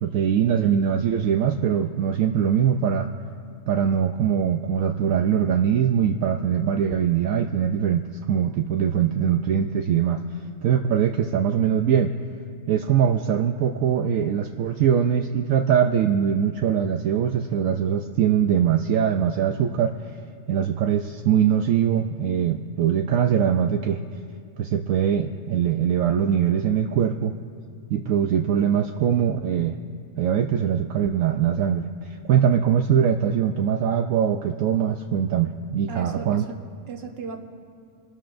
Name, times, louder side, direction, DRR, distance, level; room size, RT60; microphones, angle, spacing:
voice 1, 0.0-3.1 3.7-8.0 8.3-10.2 10.6-12.1 12.7-19.9 20.5-24.0 24.6-27.3 27.9-29.8 30.2-36.5, right 8 dB, 75° right, 4 dB, 1.0 m, -22 dB
voice 2, 35.9-37.4, right 5 dB, 45° right, 3 dB, 1.3 m, -37 dB
27.5 x 13.0 x 2.6 m, 2.3 s
omnidirectional pair, 1.5 m